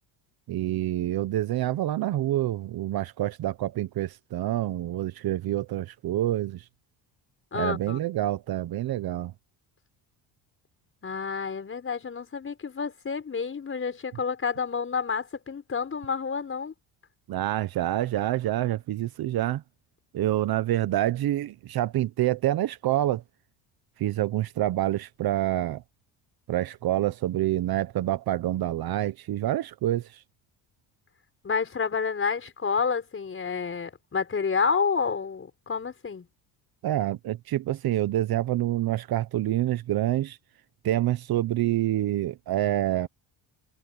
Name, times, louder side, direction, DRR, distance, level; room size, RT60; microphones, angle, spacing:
voice 1, 0.5-6.6 7.5-9.3 17.3-19.6 20.1-23.2 24.0-25.8 26.5-30.2 36.8-40.4 40.8-43.1, right 14 dB, 50° right, 1.0 m, -27 dB
voice 2, 7.5-8.0 11.0-16.7 31.4-36.3, left 5 dB, 25° left, 5.2 m, -29 dB
cardioid pair, 120°, 45 cm